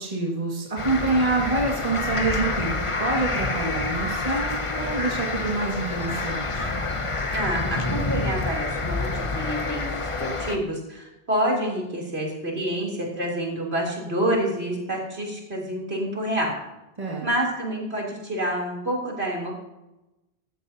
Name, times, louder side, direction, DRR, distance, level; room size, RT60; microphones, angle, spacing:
voice 1, 0.0-6.7 17.0-17.3, right 3 dB, 35° right, -2 dB, 2.1 m, -27 dB
sound 1, 0.8-10.6, left 3 dB, 30° left, 1.1 m, -28 dB
voice 2, 7.3-16.6 17.2-19.5, right 1 dB, 75° right, -2 dB, 3.6 m, -28 dB
15.0 x 13.5 x 2.8 m, 0.96 s
omnidirectional pair, 1.1 m